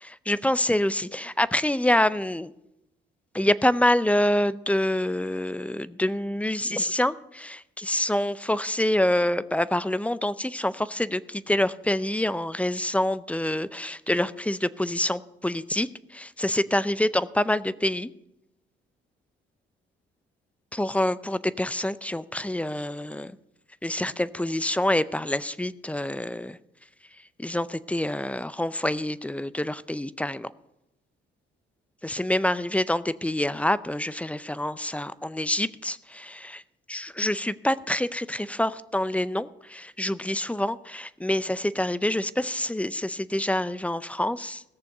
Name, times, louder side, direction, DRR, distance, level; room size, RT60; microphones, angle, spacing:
voice 1, 0.0-2.5 3.3-18.1 20.7-23.3 23.8-26.6 27.4-30.5 32.0-36.6 36.9-44.6, left 1 dB, 5° left, 16 dB, 0.5 m, -26 dB
17.0 x 7.0 x 6.6 m, 0.88 s
cardioid pair, 90°, 20 cm